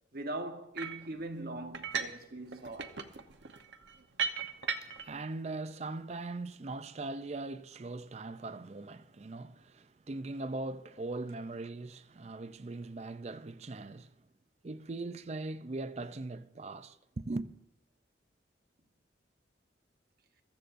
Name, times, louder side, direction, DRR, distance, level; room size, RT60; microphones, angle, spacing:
voice 1, 0.1-2.9, right 1 dB, 55° right, 1.1 m, -41 dB
sound 1, 0.8-1.1 1.7-2.2 2.5-5.1, right 6 dB, 80° right, 0.9 m, -37 dB
voice 2, 4.4-14.1 14.6-17.5, right 2 dB, 35° right, 0.5 m, -40 dB
22.0 x 14.0 x 2.6 m
head